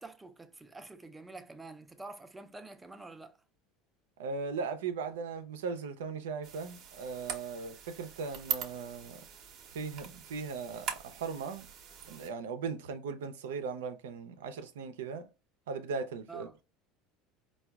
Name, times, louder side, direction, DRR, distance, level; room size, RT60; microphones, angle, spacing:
voice 1, 0.0-3.4 16.3-16.6, right 3 dB, 15° right, 0.5 m, -47 dB
voice 2, 4.2-9.2 9.7-11.7 12.1-15.3 15.7-16.5, right 5 dB, 90° right, 0.5 m, -38 dB
sound 1, 6.4-12.3, right 7 dB, 50° right, 0.7 m, -42 dB
4.5 x 2.3 x 2.3 m
supercardioid pair, 95°, 0 cm